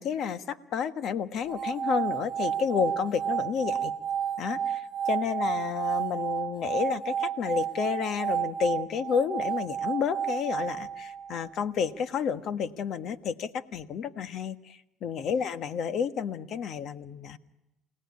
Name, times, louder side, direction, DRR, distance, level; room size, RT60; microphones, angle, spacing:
voice 1, 0.0-3.9 4.4-17.4, left 7 dB, 60° left, 10 dB, 1.4 m, -31 dB
sound 1, 1.5-11.6, right 8 dB, 45° right, 1.2 m, -31 dB
28.5 x 18.5 x 9.8 m, 0.95 s
supercardioid pair, 90°, 0 cm